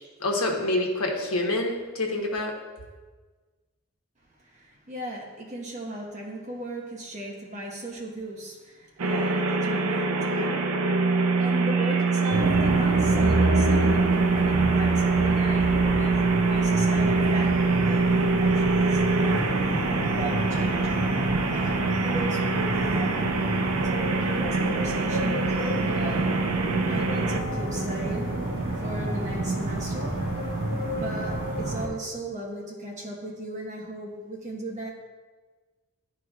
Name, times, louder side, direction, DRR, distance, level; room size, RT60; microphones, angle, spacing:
voice 1, 0.2-2.5, left 1 dB, 90° left, 1 dB, 1.1 m, -27 dB
voice 2, 4.4-10.7 11.1-18.1 18.4-19.6 20.1-21.0 21.5-23.4 23.8-26.3 26.8-28.4 28.8-30.2 30.9-34.9, right 1 dB, 35° right, -2 dB, 1.2 m, -37 dB
sound 1, 9.0-27.4, right 3 dB, 85° right, 0.5 m, -24 dB
sound 2, 12.3-31.9, right 2 dB, 60° right, 1.6 m, -28 dB
11.5 x 4.6 x 2.4 m, 1.4 s
head